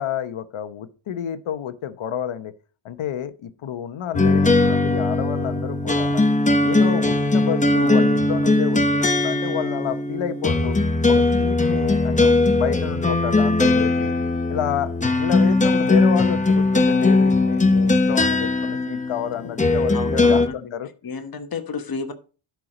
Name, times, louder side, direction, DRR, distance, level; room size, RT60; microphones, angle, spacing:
voice 1, 0.0-2.5 2.8-6.2 6.6-10.7 11.1-14.1 14.5-14.9 15.2-20.9, left 9 dB, 80° left, 12 dB, 1.0 m, -29 dB
sound 1, 4.1-20.5, left 2 dB, 15° left, 0.7 m, -19 dB
voice 2, 7.7-8.1 19.9-20.7 21.0-22.1, left 5 dB, 45° left, 8 dB, 1.2 m, -32 dB
12.0 x 4.8 x 5.0 m, 0.36 s
wide cardioid pair, 175°, 48 cm